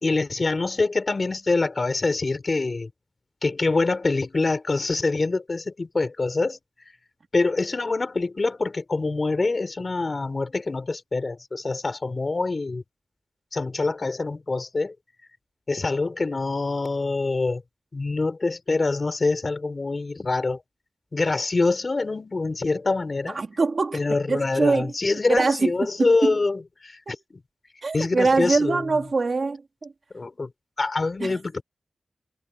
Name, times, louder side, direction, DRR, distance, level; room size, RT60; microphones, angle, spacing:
voice 1, 0.0-2.9 3.4-6.6 7.3-12.8 13.5-14.9 15.7-17.6 17.9-20.6 21.1-23.4 23.9-27.4 27.9-29.0 30.1-30.5 30.8-31.6, left 3 dB, 45° left, 4.3 m, -25 dB
voice 2, 23.3-24.9 25.3-25.7 26.0-26.3 27.8-29.9 31.2-31.3, right 3 dB, 55° right, 3.1 m, -23 dB
wide cardioid pair, 110°, 0 cm